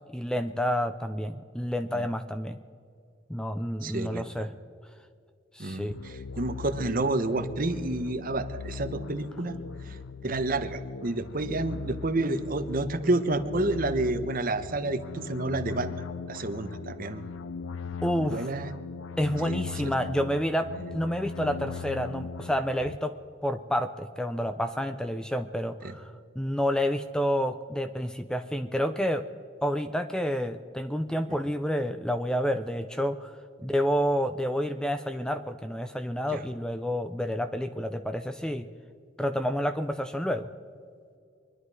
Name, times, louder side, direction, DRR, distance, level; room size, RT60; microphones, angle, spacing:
voice 1, 0.1-2.6 3.3-4.5 5.5-6.0 18.0-18.5 19.2-23.2 23.4-29.3 29.6-33.3 33.6-38.7 39.2-40.5, equal, 5° left, 9 dB, 0.4 m, -29 dB
voice 2, 3.8-4.4 5.6-9.6 9.9-10.0 10.2-16.0 16.3-17.2 18.3-18.7 19.4-19.6 25.8-25.9 36.3-36.4, right 2 dB, 45° right, 9 dB, 0.9 m, -29 dB
sound 1, 5.9-23.0, left 5 dB, 80° left, 0.5 m, -39 dB
24.5 x 11.0 x 4.7 m, 2.3 s
head